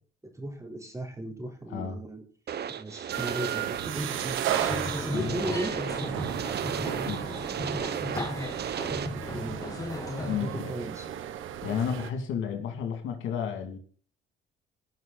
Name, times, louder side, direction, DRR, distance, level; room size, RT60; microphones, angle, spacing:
voice 1, 0.3-2.2 2.7-4.7 4.9-6.1 6.7-9.7 10.4-11.1, right 1 dB, 15° right, 2 dB, 3.9 m, -37 dB
voice 2, 1.7-2.0 5.1-5.6 7.0-7.2 10.2-10.7 11.6-13.8, left 8 dB, 85° left, 6 dB, 2.4 m, -32 dB
sound 1, 2.5-9.1, right 8 dB, 55° right, 1.0 m, -35 dB
sound 2, 3.1-12.1, right 10 dB, 85° right, 1.2 m, -35 dB
sound 3, 4.6-10.4, left 2 dB, 15° left, 2.0 m, -36 dB
17.5 x 6.2 x 4.1 m, 0.41 s
cardioid pair, 90°, 20 cm